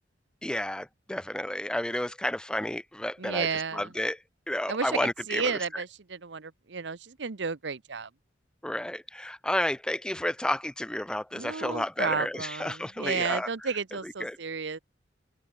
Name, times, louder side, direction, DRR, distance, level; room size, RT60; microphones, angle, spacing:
voice 1, 0.4-4.2 4.5-5.8 8.6-13.5 13.9-14.4, left 1 dB, 5° left, 0.5 m, -31 dB
voice 2, 3.2-3.9 4.7-8.1 11.3-14.8, right 5 dB, 65° right, 0.9 m, -32 dB
open air
head